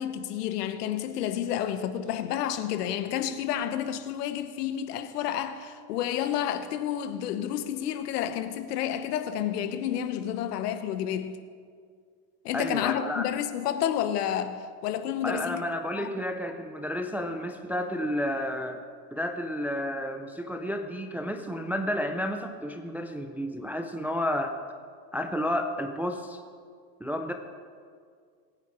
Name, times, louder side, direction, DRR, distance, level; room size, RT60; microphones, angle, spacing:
voice 1, 0.0-11.4 12.4-15.6 16.0-16.1, left 10 dB, 85° left, 1.2 m, -30 dB
voice 2, 12.5-13.2 15.2-18.8 19.1-24.5 25.1-26.4 27.0-27.3, equal, 5° right, 0.3 m, -31 dB
22.5 x 9.6 x 4.4 m
supercardioid pair, 125°, 46 cm